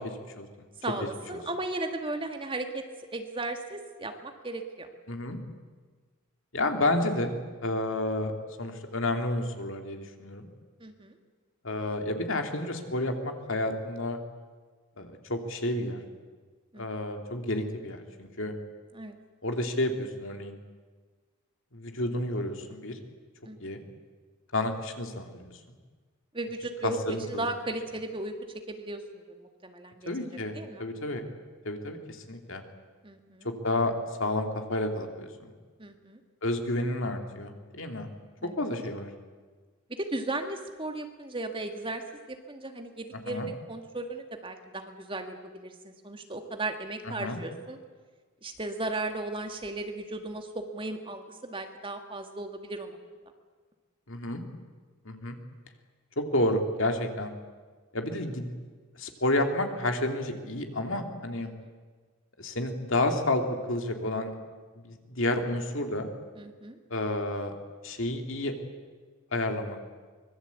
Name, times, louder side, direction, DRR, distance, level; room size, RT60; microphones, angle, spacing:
voice 1, 0.8-2.8 3.1-4.9 7.7-7.8 10.8-11.1 16.7-16.9 18.9-19.2 23.4-23.8 26.3-28.3 28.7-30.1 30.5-30.9 33.0-33.5 35.8-36.2 38.4-38.6 40.0-42.0 42.3-47.8 48.4-53.0 66.4-66.8, right 2 dB, 25° right, 5 dB, 1.9 m, -36 dB
voice 2, 5.1-5.4 6.5-7.3 7.6-8.3 8.6-10.5 11.6-14.2 15.0-16.0 16.8-18.5 19.4-20.6 21.7-23.0 23.6-23.8 24.5-25.8 26.8-27.4 30.1-31.2 31.6-32.6 33.6-33.9 34.2-35.5 36.4-38.1 38.6-39.1 43.3-43.5 47.1-47.4 54.1-54.4 55.0-55.4 56.2-57.3 57.9-58.5 58.9-61.5 62.4-63.4 63.7-64.3 64.8-66.1 66.9-67.5 67.8-68.5 69.3-69.8, left 1 dB, 60° left, 5 dB, 2.7 m, -30 dB
24.5 x 21.5 x 8.4 m, 1.4 s
head